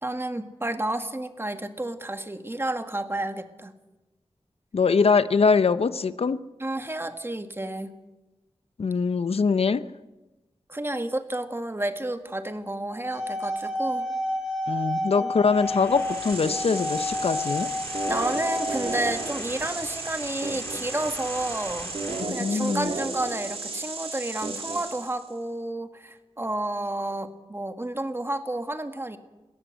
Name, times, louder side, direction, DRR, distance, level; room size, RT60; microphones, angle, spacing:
voice 1, 0.0-3.7 6.6-7.9 10.7-14.1 15.2-15.3 18.0-21.9 22.3-29.2, right 1 dB, 25° right, 8 dB, 1.8 m, -31 dB
voice 2, 4.7-6.4 8.8-9.8 14.7-17.7 22.2-22.9, left 5 dB, 80° left, 14 dB, 0.7 m, -23 dB
sound 1, 12.9-19.1, left 1 dB, 10° right, 3.3 m, -30 dB
sound 2, 15.5-22.2, left 1 dB, 25° left, 4.5 m, -43 dB
sound 3, 15.7-25.3, right 3 dB, 70° right, 2.6 m, -34 dB
22.0 x 17.0 x 8.0 m, 1.1 s
wide cardioid pair, 60°, 10 cm